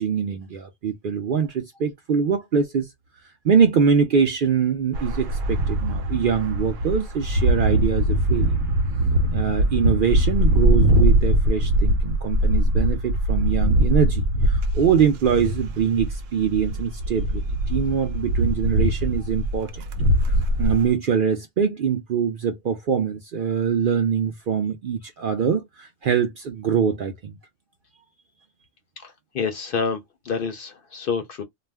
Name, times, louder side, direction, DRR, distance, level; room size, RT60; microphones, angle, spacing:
voice 1, 0.0-2.9 3.4-8.5 9.3-19.8 20.2-27.4, right 7 dB, 60° right, 0.6 m, -23 dB
sound 1, 4.9-20.9, right 1 dB, 80° right, 1.0 m, -22 dB
voice 2, 29.0-31.4, left 5 dB, 60° left, 0.6 m, -28 dB
2.4 x 2.1 x 3.2 m
omnidirectional pair, 1.3 m